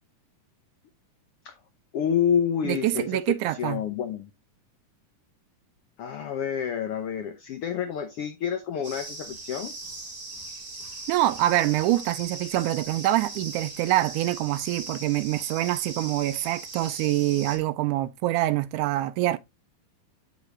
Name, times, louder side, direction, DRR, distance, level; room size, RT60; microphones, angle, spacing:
voice 1, 1.9-4.3 6.0-9.7, left 8 dB, 85° left, 1.2 m, -28 dB
voice 2, 2.6-3.8 11.1-19.4, right 15 dB, 80° right, 1.9 m, -25 dB
sound 1, 8.8-17.6, right 2 dB, 25° right, 1.2 m, -39 dB
8.0 x 6.4 x 2.9 m
omnidirectional pair, 3.7 m